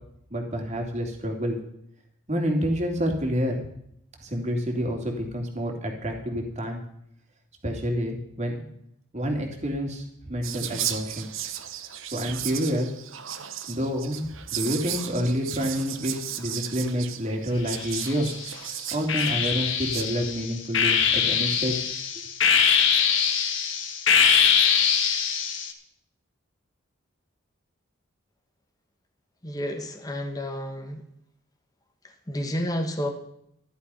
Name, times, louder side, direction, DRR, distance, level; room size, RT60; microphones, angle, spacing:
voice 1, 0.3-1.6 2.3-3.6 4.2-6.8 7.6-8.5 9.1-11.3 12.1-12.9 13.7-18.3 18.9-21.8, equal, 30° right, 2 dB, 2.8 m, -28 dB
Whispering, 10.4-20.0, right 11 dB, 70° right, 1.0 m, -35 dB
sound 1, 17.7-18.4 19.1-25.7, left 7 dB, 60° left, 1.7 m, -23 dB
voice 2, 29.4-31.0 32.3-33.1, equal, 15° left, 4 dB, 1.4 m, -30 dB
14.5 x 11.0 x 5.7 m, 0.74 s
head